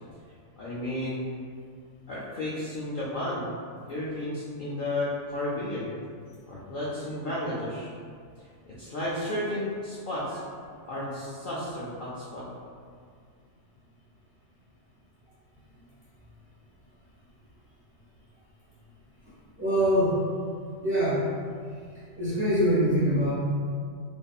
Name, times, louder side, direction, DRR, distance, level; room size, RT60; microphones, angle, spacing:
voice 1, 0.6-1.2 2.1-3.6 3.8-5.9 6.5-7.9 8.7-10.4 10.9-12.5, left 1 dB, 75° left, -8 dB, 0.4 m, -32 dB
voice 2, 19.6-20.2 20.8-21.2 22.2-23.3, equal, 10° right, -12 dB, 0.7 m, -23 dB
2.6 x 2.4 x 2.2 m, 2.1 s
omnidirectional pair, 1.4 m